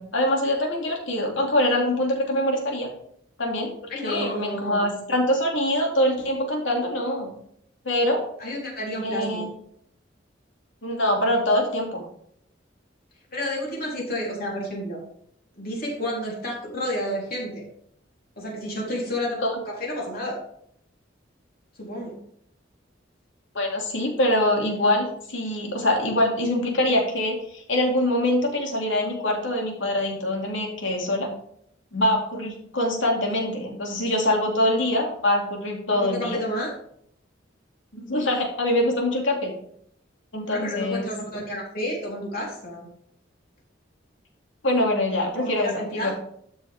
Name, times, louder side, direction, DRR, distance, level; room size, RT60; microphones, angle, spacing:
voice 1, 0.0-2.9 3.4-3.7 4.0-7.3 7.8-8.2 9.0-9.5 10.8-12.0 19.4-19.6 23.5-31.3 31.9-36.4 37.9-39.5 40.3-41.1 44.6-46.1, left 1 dB, 80° left, 1 dB, 2.7 m, -24 dB
voice 2, 3.9-4.8 8.4-9.4 13.3-15.0 15.5-17.6 18.4-20.4 21.8-22.2 36.0-36.7 40.4-42.9 45.4-46.1, left 1 dB, 55° left, -3 dB, 3.9 m, -30 dB
12.5 x 6.3 x 3.6 m, 0.68 s
head